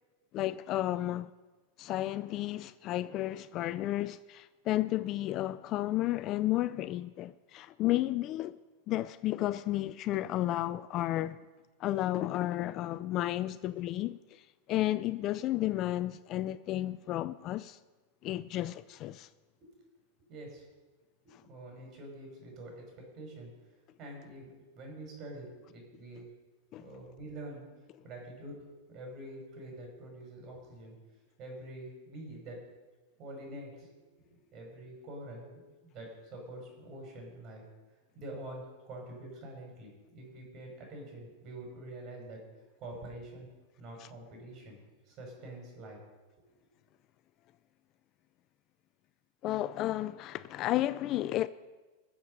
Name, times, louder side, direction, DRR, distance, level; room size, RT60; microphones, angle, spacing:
voice 1, 0.3-1.3 1.8-8.6 8.9-11.4 11.8-14.4 14.7-17.8 18.2-19.3 26.7-26.8 49.4-51.5, left 15 dB, 35° left, 0.4 m, -32 dB
voice 2, 20.3-20.6 21.2-22.8 23.1-23.5 24.0-26.3 26.8-27.7 28.0-28.6 28.9-30.9 31.4-32.6 33.2-33.9 34.3-37.6 38.1-42.4 42.8-43.5 43.8-44.8 45.1-46.0, right 1 dB, 35° right, 5.5 m, -46 dB
20.5 x 7.4 x 5.4 m
supercardioid pair, 140°, 0 cm